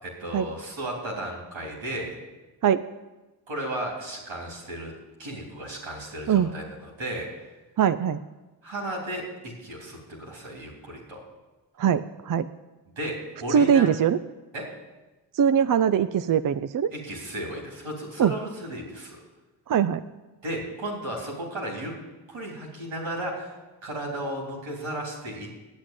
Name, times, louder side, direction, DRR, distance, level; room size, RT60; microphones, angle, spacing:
voice 1, 0.0-2.2 3.5-4.9 5.2-7.3 8.6-11.2 12.9-13.1 13.4-13.9 14.5-14.7 16.9-19.2 20.4-21.9 22.3-23.5 23.8-25.5, right 1 dB, 85° right, -1 dB, 3.5 m, -34 dB
voice 2, 7.8-8.2 11.8-12.5 13.5-14.2 15.3-16.9 18.2-18.3 19.7-20.0, right 8 dB, 45° right, 12 dB, 0.5 m, -21 dB
8.8 x 8.3 x 9.0 m, 1.1 s
supercardioid pair, 50°, 46 cm